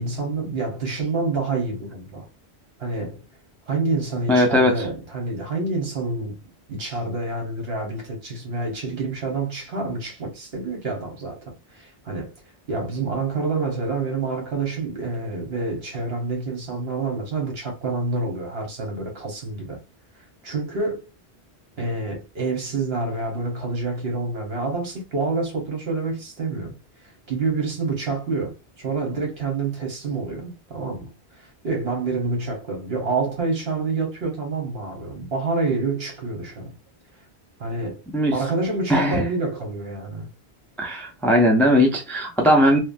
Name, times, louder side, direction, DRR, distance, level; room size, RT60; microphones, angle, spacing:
voice 1, 0.0-2.3 2.8-3.2 3.7-6.4 6.7-12.3 12.7-19.8 20.4-21.0 21.8-36.7 37.6-38.0 38.3-40.3, right 3 dB, 65° right, 1.4 m, -27 dB
voice 2, 4.3-4.7 38.1-38.3 38.9-39.2 40.8-42.8, equal, 5° left, 0.4 m, -18 dB
3.2 x 2.2 x 2.5 m
omnidirectional pair, 1.1 m